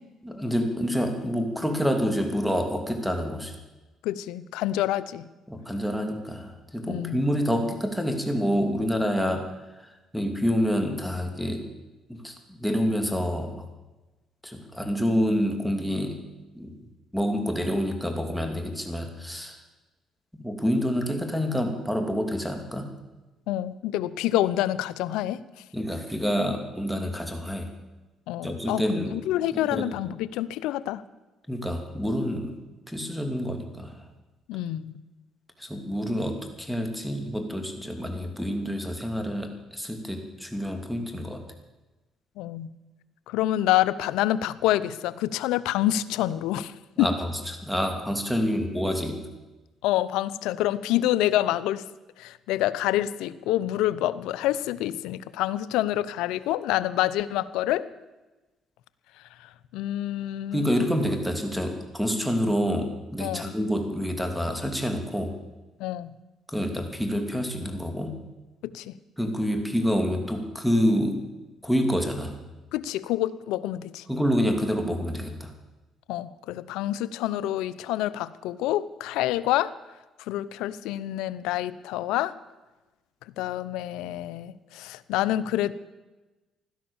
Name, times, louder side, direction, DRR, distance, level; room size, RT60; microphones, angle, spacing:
voice 1, 0.2-3.5 5.5-11.6 12.1-13.7 14.4-16.2 16.5-16.7 17.1-19.6 20.3-22.9 25.7-27.7 28.4-29.2 29.5-29.8 31.5-32.6 32.9-34.1 35.6-41.4 47.0-49.2 60.5-65.4 66.5-68.1 69.2-71.3 71.6-72.4 74.1-75.5, equal, ahead, 4 dB, 2.8 m, -27 dB
voice 2, 4.0-5.3 6.9-7.2 23.5-25.4 28.3-31.0 34.5-34.9 42.4-42.7 43.3-47.1 49.8-51.8 52.2-57.9 59.7-60.8 63.2-63.5 65.8-66.1 68.6-68.9 72.7-74.0 76.1-79.7 80.3-82.3 83.4-85.7, left 14 dB, 85° left, 16 dB, 0.6 m, -27 dB
16.0 x 12.0 x 7.2 m, 1.1 s
cardioid pair, 85°, 0 cm